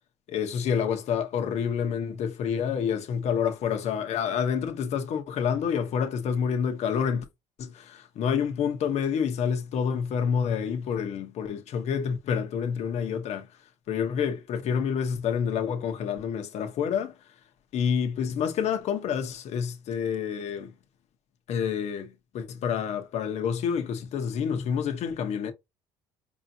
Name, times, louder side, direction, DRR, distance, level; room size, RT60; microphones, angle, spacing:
voice 1, 0.3-7.3 7.6-13.5 13.9-17.2 17.7-20.7 21.5-25.5, left 7 dB, 60° left, 0.9 m, -28 dB
4.8 x 2.7 x 2.8 m
cardioid pair, 100°, 13 cm